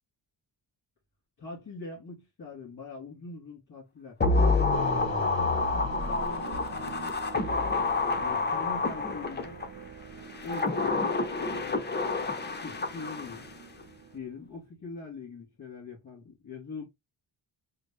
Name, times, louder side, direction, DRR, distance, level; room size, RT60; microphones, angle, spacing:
voice 1, 1.4-4.2 5.0-7.2 8.1-9.6 10.4-11.1 12.6-13.5 14.1-16.8, left 3 dB, 40° left, 2.1 m, -42 dB
sound 1, 4.2-9.7 10.3-13.5 13.8-13.9, left 3 dB, 20° left, 0.6 m, -28 dB
sound 2, 4.7-14.4, right 7 dB, 45° right, 0.5 m, -44 dB
3.9 x 2.0 x 3.4 m
wide cardioid pair, 120°, 48 cm